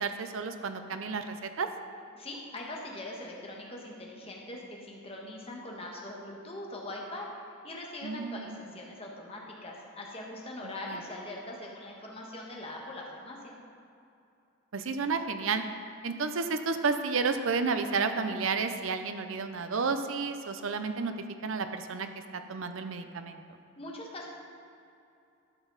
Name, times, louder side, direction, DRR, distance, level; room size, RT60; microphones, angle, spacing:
voice 1, 0.0-1.7 8.0-8.6 10.9-11.0 14.7-15.7 16.0-21.1 21.4-22.1 22.3-23.4, right 4 dB, 65° right, 8 dB, 0.6 m, -31 dB
voice 2, 2.1-7.3 7.6-13.5 23.8-24.3, left 1 dB, 25° left, -2 dB, 1.3 m, -42 dB
12.0 x 6.1 x 4.0 m, 2.6 s
head